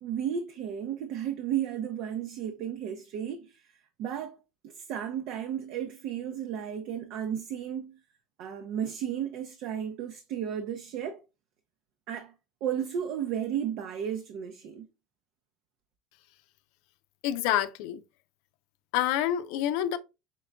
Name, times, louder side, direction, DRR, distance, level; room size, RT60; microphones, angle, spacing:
voice 1, 0.0-3.7 4.0-4.4 4.6-8.0 8.4-11.2 12.1-12.3 12.6-14.9, right 9 dB, 65° right, 0.6 m, -33 dB
voice 2, 17.2-18.0 18.9-20.0, left 12 dB, 80° left, 0.5 m, -27 dB
5.2 x 3.7 x 2.2 m
cardioid pair, 135°, 0 cm